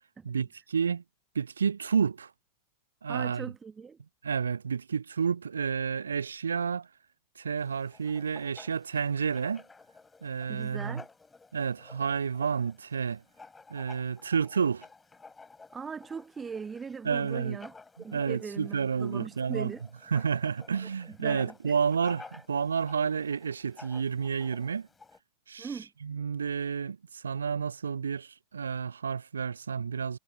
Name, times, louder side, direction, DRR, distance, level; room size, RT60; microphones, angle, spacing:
voice 1, 0.2-1.0 1.4-2.3 3.0-3.5 4.2-6.9 7.4-9.6 10.2-11.0 11.5-13.2 13.7-14.9 17.0-17.6 18.1-19.7 20.1-24.9 25.5-30.2, right 6 dB, 70° right, 0.4 m, -30 dB
voice 2, 3.1-4.0 10.5-11.1 15.7-19.8 20.8-20.9 21.2-21.7 25.6-25.9, right 5 dB, 15° right, 0.7 m, -40 dB
Writing, 7.6-25.2, left 4 dB, 10° left, 7.6 m, -53 dB
figure-of-eight pair, 90°, 0 cm